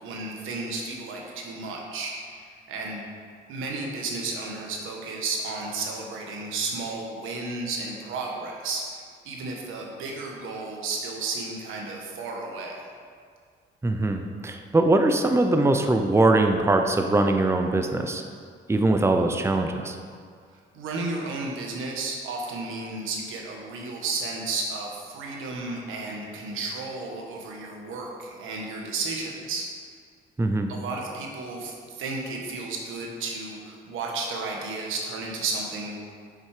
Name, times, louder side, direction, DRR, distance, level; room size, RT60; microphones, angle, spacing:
voice 1, 0.0-3.0 3.5-12.9 20.7-29.7 30.7-36.0, right 3 dB, 90° right, 0 dB, 1.5 m, -33 dB
voice 2, 13.8-18.2 18.7-20.0 30.4-30.7, right 2 dB, 15° right, 5 dB, 0.6 m, -22 dB
7.9 x 6.6 x 5.0 m, 2.1 s
cardioid pair, 90°, 20 cm